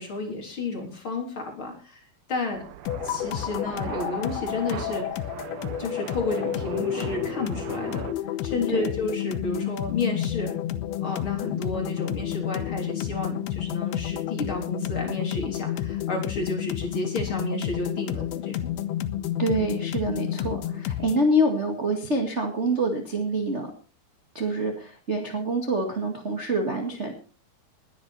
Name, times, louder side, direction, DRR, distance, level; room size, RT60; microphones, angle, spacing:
voice 1, 0.0-2.0 2.3-2.6 3.0-5.3 5.8-8.1 8.4-10.5 11.0-18.7, left 3 dB, 35° left, 2 dB, 4.2 m, -31 dB
sound 1, 2.5-8.1, right 10 dB, 75° right, 1.6 m, -38 dB
sound 2, 2.9-21.3, left 12 dB, 85° left, 2.8 m, -30 dB
voice 2, 19.4-23.7 24.3-27.1, right 1 dB, 25° right, 3 dB, 1.5 m, -26 dB
20.5 x 9.8 x 4.3 m, 0.36 s
omnidirectional pair, 4.5 m